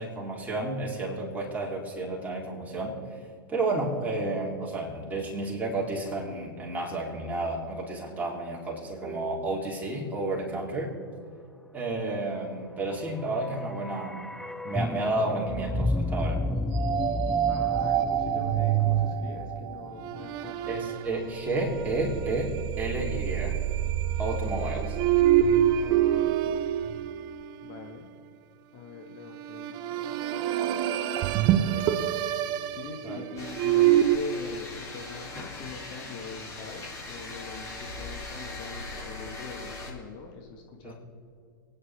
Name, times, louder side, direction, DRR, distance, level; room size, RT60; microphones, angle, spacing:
voice 1, 0.0-3.0 3.5-10.9 11.7-14.3 14.6-16.4 20.7-23.6 24.2-25.0 33.0-33.3 40.8-40.9, right 2 dB, 15° right, -3 dB, 3.9 m, -31 dB
sound 1, 13.1-21.2 21.4-21.5, left 1 dB, ahead, 0.4 m, -33 dB
sound 2, 16.7-27.9 29.4-34.2, right 11 dB, 40° right, 0.7 m, -26 dB
voice 2, 17.5-20.8 25.7-26.7 27.6-28.1 28.7-30.2 31.4-31.9 32.6-40.9, left 5 dB, 40° left, 2 dB, 1.8 m, -43 dB
sound 3, 33.4-39.9, left 2 dB, 25° left, 3.9 m, -40 dB
28.5 x 9.9 x 3.8 m, 2.4 s
figure-of-eight pair, 100°, 12 cm